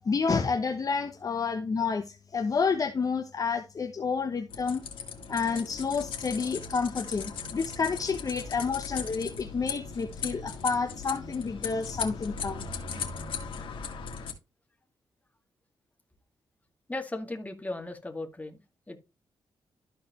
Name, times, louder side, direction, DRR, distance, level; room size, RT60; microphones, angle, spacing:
voice 1, 0.1-4.8 5.3-12.6, left 5 dB, 45° left, 1.0 m, -29 dB
sound 1, 4.5-14.3, left 5 dB, 80° left, 2.0 m, -38 dB
voice 2, 16.9-19.0, left 2 dB, 15° left, 2.1 m, -37 dB
13.0 x 4.7 x 3.0 m
cardioid pair, 90°, 9 cm